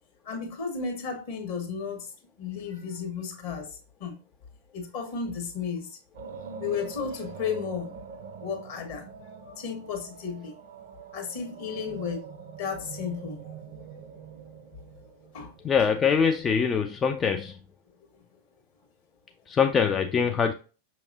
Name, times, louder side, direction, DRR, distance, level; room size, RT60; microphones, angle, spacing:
voice 1, 0.2-2.1 2.4-4.1 4.7-6.0 6.6-7.9 8.4-10.5 11.1-12.3 12.6-13.4 15.3-15.5, left 6 dB, 50° left, 1.5 m, -34 dB
sound 1, 6.1-16.3, right 6 dB, 60° right, 0.5 m, -44 dB
voice 2, 15.6-17.6 19.5-20.5, left 6 dB, 20° left, 0.3 m, -23 dB
6.4 x 2.9 x 2.6 m
figure-of-eight pair, 90°, 0 cm